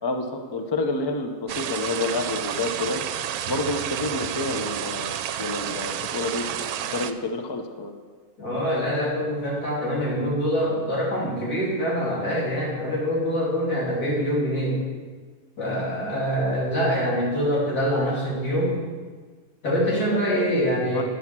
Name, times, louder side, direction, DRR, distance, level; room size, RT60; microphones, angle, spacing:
voice 1, 0.0-3.0 3.5-6.5 6.9-7.9 20.1-20.2 20.9-21.0, left 2 dB, 30° left, 5 dB, 0.5 m, -29 dB
sound 1, 1.5-7.1, right 10 dB, 85° right, 1.1 m, -30 dB
voice 2, 8.4-14.8 15.6-18.8 19.6-21.0, equal, 85° left, -5 dB, 3.3 m, -24 dB
9.3 x 6.1 x 7.4 m, 1.5 s
omnidirectional pair, 1.6 m